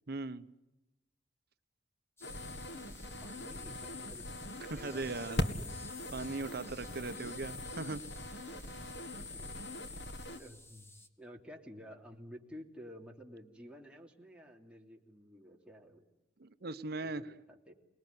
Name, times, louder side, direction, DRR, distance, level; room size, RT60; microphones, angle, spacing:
voice 1, 0.1-0.5 4.7-5.4 6.1-8.0 16.4-17.3, right 3 dB, 60° right, 11 dB, 1.0 m, -39 dB
sound 1, 2.2-10.4, left 1 dB, 70° left, 2.0 m, -41 dB
sound 2, 2.2-11.1, left 1 dB, 15° left, 2.0 m, -57 dB
voice 2, 3.2-5.7 9.3-9.5 10.3-10.9 11.2-16.0 17.0-17.7, equal, 5° right, -1 dB, 3.0 m, -52 dB
29.0 x 20.0 x 9.7 m, 0.97 s
head